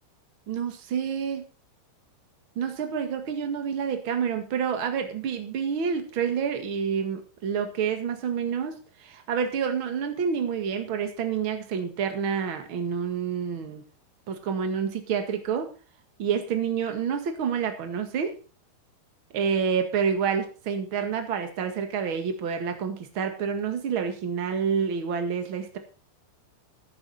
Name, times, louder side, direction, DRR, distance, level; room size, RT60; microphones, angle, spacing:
voice 1, 0.5-1.4 2.6-13.8 14.3-15.7 16.2-18.4 19.3-25.8, right 7 dB, 45° right, 6 dB, 1.8 m, -28 dB
13.0 x 10.0 x 4.1 m, 0.36 s
omnidirectional pair, 4.8 m